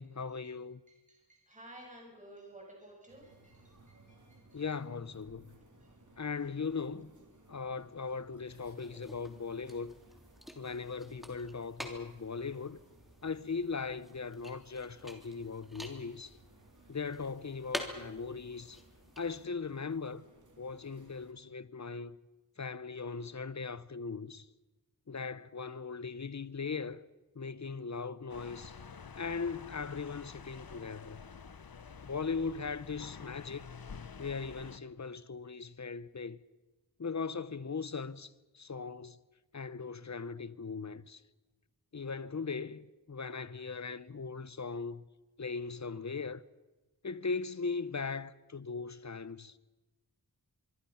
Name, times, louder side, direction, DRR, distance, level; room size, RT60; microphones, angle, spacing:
voice 1, 0.0-0.8 4.5-5.5 6.2-7.1 7.5-9.9 10.6-12.8 13.2-16.3 16.9-18.8 19.2-20.2 20.6-22.2 22.6-24.5 25.1-27.0 27.4-28.8 29.1-31.2 32.0-33.7 34.2-36.4 37.0-39.2 39.5-41.2 41.9-45.0 45.4-46.4 47.0-49.6, left 5 dB, 50° left, 0.9 m, -39 dB
voice 2, 0.9-4.6 5.8-5.9, right 1 dB, 20° right, 6.7 m, -54 dB
sound 1, 3.1-21.3, right 2 dB, 55° right, 3.0 m, -62 dB
sound 2, 8.5-19.5, equal, ahead, 3.3 m, -48 dB
sound 3, 28.3-34.8, left 6 dB, 75° left, 1.0 m, -49 dB
24.5 x 24.0 x 5.8 m
wide cardioid pair, 65°, 36 cm